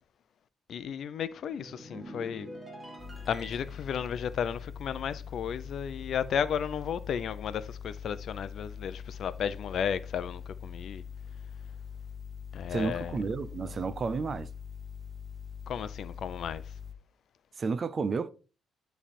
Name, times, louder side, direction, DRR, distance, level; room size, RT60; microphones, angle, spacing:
voice 1, 0.7-2.5 3.3-11.0 12.5-13.2 15.7-16.6, left 8 dB, 65° left, 0.6 m, -34 dB
sound 1, 1.4-6.0 6.3-6.6, equal, 10° right, 2.5 m, -48 dB
sound 2, 3.0-16.9, left 7 dB, 20° left, 1.1 m, -43 dB
voice 2, 12.7-14.5 17.6-18.3, right 4 dB, 40° right, 0.6 m, -31 dB
9.9 x 3.4 x 4.3 m
cardioid pair, 90°, 0 cm